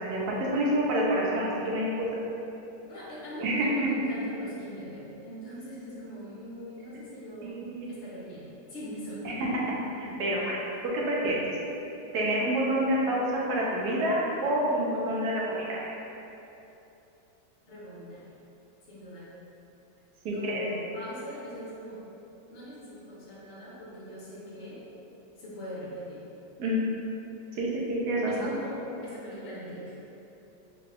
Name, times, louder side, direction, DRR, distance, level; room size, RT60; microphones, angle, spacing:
voice 1, 0.0-1.9 3.4-3.7 7.4-7.9 9.2-9.5 10.0-10.6 10.8-11.4 12.1-15.8 20.2-20.7 26.6-26.8 27.6-28.3, right 1 dB, 70° right, -4 dB, 1.1 m, -28 dB
voice 2, 2.9-9.4 17.6-18.3 18.9-19.3 20.3-22.0 22.5-24.8 25.4-26.2 28.3-30.0, equal, 55° left, -7 dB, 0.8 m, -41 dB
3.7 x 2.3 x 3.2 m, 2.9 s
omnidirectional pair, 1.9 m